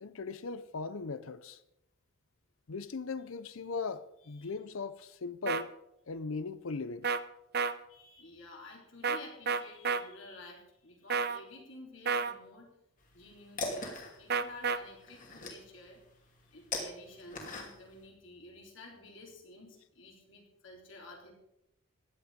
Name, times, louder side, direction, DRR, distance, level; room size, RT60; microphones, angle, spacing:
voice 1, 0.0-1.6 2.7-5.7 6.1-7.1, left 4 dB, 80° left, 0.7 m, -39 dB
voice 2, 4.2-4.6 7.9-12.7 13.1-16.0 16.5-21.3, left 2 dB, 60° left, 4.3 m, -52 dB
sound 1, 5.5-5.6 7.0-7.2 7.5-7.7 9.0-9.2 9.5-10.0 11.1-11.4 12.1-12.3 14.3-14.8, right 5 dB, 50° right, 0.8 m, -30 dB
sound 2, 13.0-18.1, left 3 dB, 40° left, 2.8 m, -41 dB
16.0 x 11.0 x 5.2 m
head